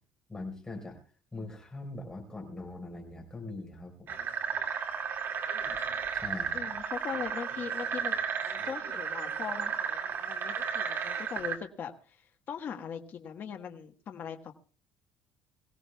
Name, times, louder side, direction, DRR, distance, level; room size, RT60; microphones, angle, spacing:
voice 1, 0.3-1.0 1.3-4.2 6.1-6.7, left 2 dB, 10° left, 2 dB, 4.7 m, -42 dB
sound 1, 4.1-11.6, right 6 dB, 40° right, 2.3 m, -33 dB
voice 2, 6.5-8.2 8.6-12.2 12.5-14.5, left 7 dB, 35° left, 5 dB, 1.4 m, -40 dB
23.5 x 16.5 x 2.3 m, 0.38 s
cardioid pair, 160°, 6 cm